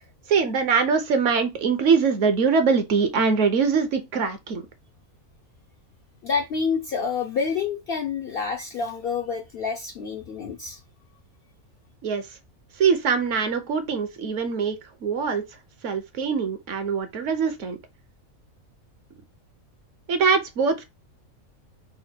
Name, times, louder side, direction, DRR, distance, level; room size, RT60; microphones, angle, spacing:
voice 1, 0.3-4.6 12.0-12.3 12.8-15.4 15.8-17.8 20.1-20.8, right 5 dB, 65° right, 1.0 m, -23 dB
voice 2, 6.2-10.8, left 5 dB, 65° left, 0.6 m, -28 dB
3.9 x 2.1 x 4.3 m
omnidirectional pair, 1.5 m